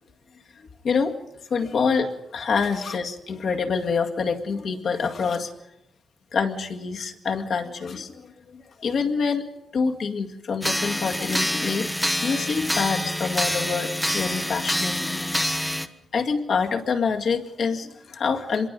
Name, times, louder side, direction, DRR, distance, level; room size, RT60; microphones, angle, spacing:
voice 1, 0.6-1.2 1.5-5.5 6.3-9.4 9.7-11.9 12.2-15.3 16.1-18.7, left 5 dB, 55° left, 3 dB, 2.0 m, -26 dB
sound 1, 10.6-15.9, left 1 dB, 5° left, 1.0 m, -26 dB
26.0 x 22.0 x 5.4 m, 0.90 s
wide cardioid pair, 150°, 0 cm